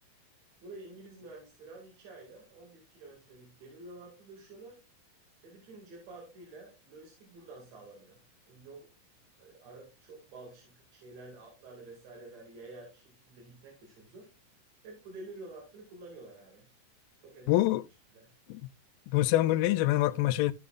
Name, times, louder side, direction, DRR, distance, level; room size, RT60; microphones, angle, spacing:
voice 1, 0.6-4.8 5.4-8.2 8.5-8.9 9.4-14.3 14.8-16.7 17.2-17.7 18.1-18.3, right 2 dB, 55° right, 3.3 m, -49 dB
voice 2, 17.5-17.8 18.5-18.7 19.1-20.5, left 15 dB, 85° left, 2.2 m, -25 dB
14.0 x 5.0 x 2.4 m
omnidirectional pair, 4.0 m